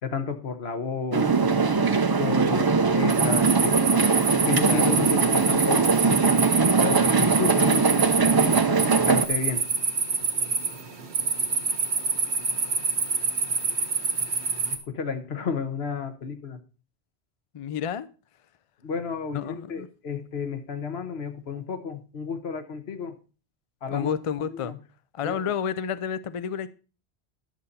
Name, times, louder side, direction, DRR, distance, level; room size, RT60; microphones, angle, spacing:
voice 1, 0.0-1.3 2.2-3.8 4.5-9.6 14.7-16.6 18.8-23.2 23.8-24.1 24.5-24.8 25.2-25.4, left 5 dB, 70° left, 7 dB, 1.3 m, -32 dB
sound 1, 1.1-9.3, right 4 dB, 35° right, 0.4 m, -21 dB
sound 2, 3.1-14.8, right 5 dB, 75° right, 1.5 m, -27 dB
voice 2, 4.7-5.0 17.5-18.1 19.3-19.9 23.9-24.7 25.1-26.7, left 8 dB, 50° left, 15 dB, 0.4 m, -30 dB
11.0 x 6.6 x 4.1 m, 0.35 s
omnidirectional pair, 1.1 m